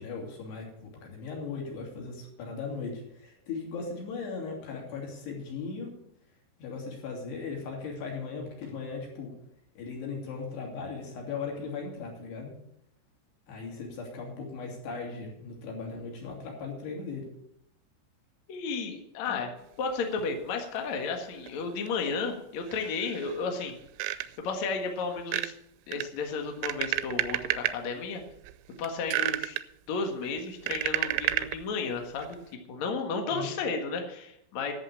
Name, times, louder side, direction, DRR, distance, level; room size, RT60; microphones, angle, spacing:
voice 1, 0.0-5.9 6.6-9.3 9.8-12.5 13.5-17.3 19.3-19.5 33.3-33.5, left 4 dB, 55° left, -1 dB, 4.8 m, -38 dB
voice 2, 18.5-19.5 19.8-23.7 24.4-25.5 25.9-28.2 28.8-29.6 29.9-32.4 32.7-34.7, left 4 dB, 75° left, 3 dB, 1.6 m, -33 dB
sound 1, 21.5-21.6 21.9-22.0 22.7-23.4 23.7-24.5 25.2-25.5 25.9-27.8 28.3-28.5 28.8-29.6 30.2-31.6 32.2-32.4, right 15 dB, 85° right, 3.0 m, -31 dB
11.0 x 7.7 x 8.5 m, 0.79 s
omnidirectional pair, 5.9 m